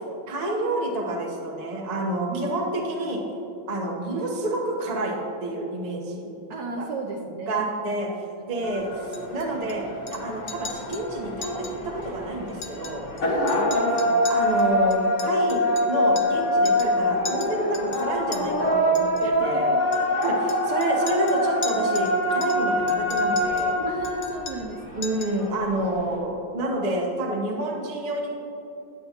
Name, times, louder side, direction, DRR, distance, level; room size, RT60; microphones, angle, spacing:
voice 1, 0.3-3.2 3.7-6.3 6.8-6.9 7.5-8.1 8.5-9.8 10.1-13.0 14.3-19.7 20.2-23.8 25.0-28.4, right 1 dB, 45° right, 0 dB, 0.5 m, -28 dB
voice 2, 6.5-7.8 8.5-8.7 13.2-14.3 19.2-19.8 23.9-25.2, right 3 dB, 70° right, 0 dB, 1.0 m, -35 dB
sound 1, 8.6-26.2, left 1 dB, 40° left, 1.6 m, -25 dB
Chink clink, 9.1-9.7 10.1-10.2 10.5-11.0 11.4-11.7 12.0-12.1 12.5-13.2 13.5-16.4 16.7-17.0 17.3-18.4 19.0-19.2 19.9-22.1 22.4-23.7 24.0-24.8 25.0-25.4, left 5 dB, 85° left, 0.6 m, -39 dB
9.1 x 8.5 x 2.9 m, 2.9 s
omnidirectional pair, 2.2 m